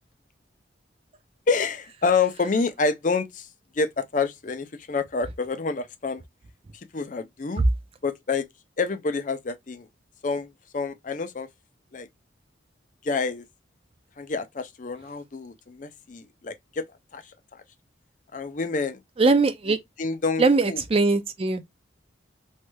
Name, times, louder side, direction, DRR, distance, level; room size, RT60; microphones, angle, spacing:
voice 1, 1.5-3.5 3.7-6.2 6.9-7.6 8.0-8.5 8.8-9.9 10.2-11.5 11.9-12.1 13.0-13.4 14.2-16.8 17.1-17.6 18.3-19.0 19.7-20.8, left 4 dB, 40° left, 0.5 m, -28 dB
voice 2, 19.2-19.8 20.4-21.6, right 3 dB, 30° right, 0.4 m, -21 dB
3.1 x 3.0 x 2.2 m
head